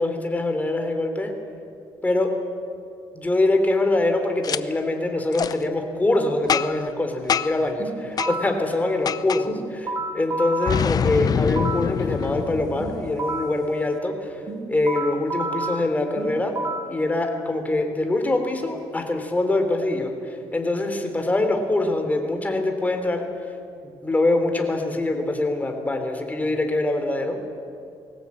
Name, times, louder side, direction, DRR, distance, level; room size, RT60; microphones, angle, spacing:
voice 1, 0.0-1.3 2.0-2.3 3.1-14.4 14.7-16.6 16.8-23.3 23.8-27.4, left 2 dB, 15° left, 5 dB, 3.4 m, -24 dB
Boom, 4.4-4.6 5.3-5.5 6.5-6.9 7.3-7.7 8.2-8.3 9.1-9.4 10.7-13.4, left 7 dB, 45° left, 0.7 m, -25 dB
sound 1, 7.8-8.6 9.5-12.0 12.8-13.6 14.5-17.0, right 2 dB, 45° right, 2.9 m, -31 dB
21.0 x 18.0 x 8.6 m, 2.4 s
cardioid pair, 100°, 9 cm